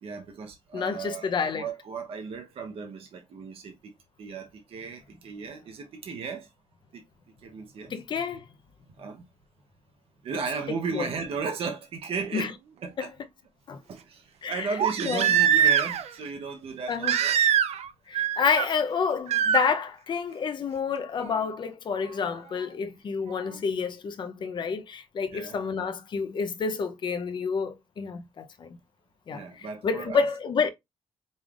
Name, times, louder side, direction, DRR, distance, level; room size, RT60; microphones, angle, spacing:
voice 1, 0.0-3.9 4.2-6.5 6.9-7.0 7.4-7.9 9.0-9.2 10.2-12.5 12.8-13.1 13.9-17.4 25.3-25.6 29.3-30.2, right 5 dB, 60° right, 0.8 m, -35 dB
voice 2, 0.7-1.7 7.9-8.5 10.7-11.1 12.3-12.5 13.0-13.1 13.7-13.8 14.4-14.8 15.0-15.4 16.9-17.2 18.1-28.8 29.3-30.7, left 5 dB, 45° left, 0.6 m, -29 dB
Crying sobbing, 12.1-12.2 14.8-16.1 17.0-17.9 18.1-18.7 19.3-19.6 21.2-21.3, right 9 dB, 75° right, 0.4 m, -23 dB
5.3 x 3.3 x 2.4 m
wide cardioid pair, 160°, 11 cm